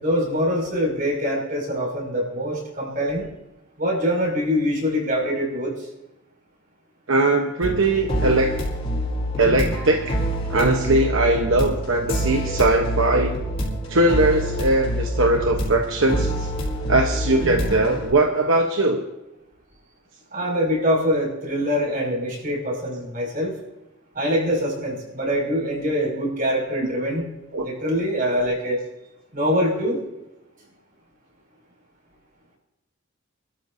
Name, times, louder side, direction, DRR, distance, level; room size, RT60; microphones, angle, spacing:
voice 1, 0.0-3.3 3.8-5.7 20.3-23.5 24.1-27.2 27.6-28.8 29.3-30.0, equal, 40° right, -1 dB, 6.2 m, -24 dB
voice 2, 7.1-8.6 9.4-10.2 10.5-13.3 13.9-16.5 16.9-19.0 27.5-27.7, right 2 dB, 75° right, 3 dB, 1.1 m, -20 dB
sound 1, 7.6-18.1, equal, 30° left, 4.3 m, -26 dB
29.0 x 13.0 x 2.7 m, 0.94 s
head